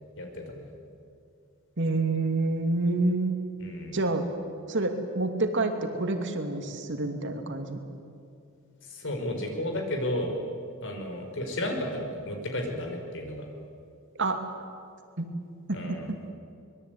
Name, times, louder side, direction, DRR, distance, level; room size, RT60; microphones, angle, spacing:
voice 1, 0.2-0.6 3.6-4.0 8.8-10.4 10.8-13.5 15.7-16.1, left 1 dB, 60° left, 3 dB, 5.3 m, -33 dB
voice 2, 1.8-3.4 3.9-4.3 4.7-7.8 14.2-14.4 15.2-15.3 15.7-15.8, right 2 dB, 55° right, 5 dB, 2.7 m, -27 dB
24.5 x 22.0 x 9.5 m, 2.4 s
head